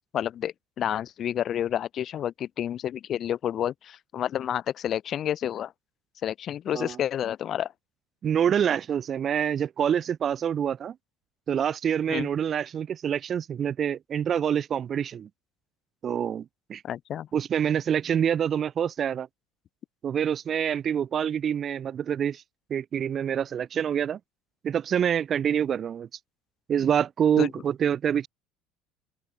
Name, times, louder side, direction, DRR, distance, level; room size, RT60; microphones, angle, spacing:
voice 1, 0.1-5.7 6.2-7.7 12.1-12.3 16.8-17.3 27.4-27.5, left 10 dB, 45° left, 6.1 m, -30 dB
voice 2, 8.2-11.0 11.5-15.3 16.0-16.8 17.3-19.3 20.0-22.4 22.7-24.2 24.6-26.1 26.7-28.3, right 8 dB, 40° right, 3.7 m, -26 dB
supercardioid pair, 115°, 0 cm